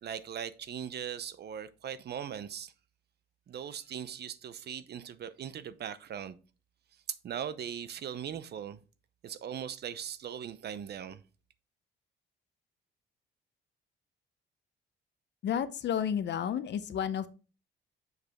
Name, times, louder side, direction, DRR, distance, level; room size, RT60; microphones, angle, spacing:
voice 1, 0.0-2.7 3.5-6.4 7.2-8.8 9.2-11.2, right 8 dB, 55° right, 0.7 m, -39 dB
voice 2, 15.4-17.3, left 8 dB, 60° left, 0.7 m, -31 dB
6.6 x 5.0 x 3.5 m
cardioid pair, 90°, 20 cm